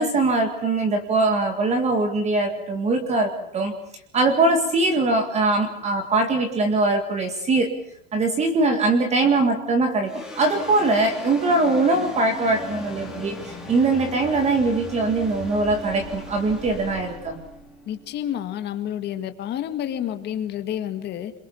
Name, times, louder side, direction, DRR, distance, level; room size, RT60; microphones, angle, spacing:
voice 1, 0.0-3.7 4.1-7.7 8.1-17.4, right 3 dB, 20° right, 7 dB, 2.0 m, -22 dB
sound 1, 10.1-18.6, left 1 dB, ahead, 3.6 m, -37 dB
voice 2, 17.9-21.3, left 10 dB, 30° left, 8 dB, 1.9 m, -29 dB
27.0 x 23.0 x 7.1 m, 0.73 s
supercardioid pair, 180°, 37 cm